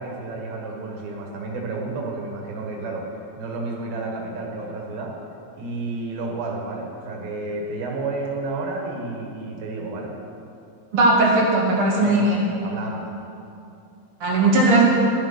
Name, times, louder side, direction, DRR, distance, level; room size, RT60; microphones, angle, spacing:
voice 1, 0.0-3.0 3.4-5.1 5.5-10.1 12.0-12.3 12.6-13.1 14.2-14.6, right 3 dB, 90° right, 0 dB, 3.5 m, -31 dB
voice 2, 10.9-12.4 14.2-14.8, right 2 dB, 45° right, -3 dB, 2.4 m, -18 dB
11.5 x 10.5 x 5.6 m, 2.6 s
omnidirectional pair, 4.1 m